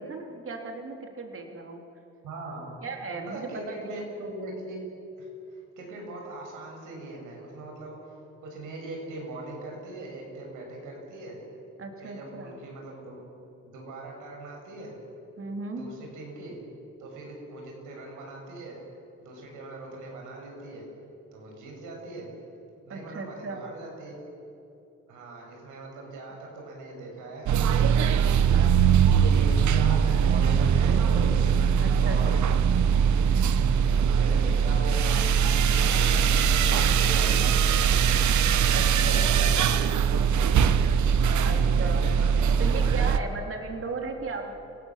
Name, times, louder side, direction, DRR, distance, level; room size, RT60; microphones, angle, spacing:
voice 1, 0.0-1.8 2.8-3.9 11.8-12.6 15.4-15.9 22.9-23.6 31.8-32.2 38.7-39.6 41.4-42.1 42.6-44.5, right 3 dB, 45° right, 3 dB, 3.6 m, -36 dB
voice 2, 2.2-2.7 3.3-4.8 5.2-11.4 12.0-13.2 13.6-15.0 15.7-16.6 17.0-18.8 19.2-20.9 21.3-22.3 22.9-24.2 25.1-31.3 32.0-32.4 33.5-35.4 35.8-38.3 39.0-40.7 41.3-43.3 44.0-44.1, right 2 dB, 85° right, 0 dB, 7.6 m, -40 dB
sound 1, 27.5-43.2, right 7 dB, 70° right, 1.2 m, -21 dB
29.5 x 17.5 x 7.6 m, 2.8 s
cardioid pair, 90°, 30 cm